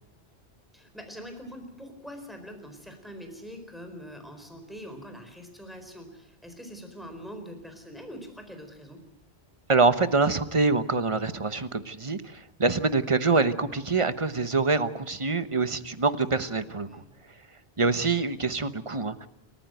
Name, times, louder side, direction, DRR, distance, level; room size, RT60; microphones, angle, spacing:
voice 1, 0.7-9.0 16.4-17.1, equal, ahead, 5 dB, 4.4 m, -44 dB
voice 2, 9.7-17.0 17.8-19.3, right 4 dB, 30° right, 11 dB, 1.1 m, -25 dB
28.5 x 15.0 x 9.2 m, 0.86 s
omnidirectional pair, 1.2 m